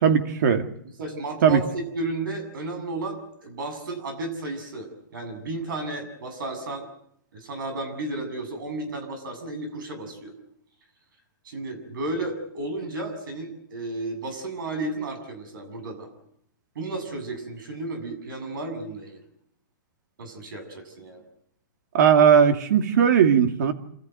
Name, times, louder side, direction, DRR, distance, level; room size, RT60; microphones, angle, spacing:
voice 1, 0.0-0.6 1.4-1.6 21.9-23.7, right 7 dB, 60° right, 2.4 m, -18 dB
voice 2, 1.0-6.9 7.3-10.3 11.4-16.1 16.8-19.2 20.2-21.2, right 2 dB, 75° right, 7.3 m, -33 dB
28.0 x 14.0 x 9.5 m
hypercardioid pair, 165°, 11 cm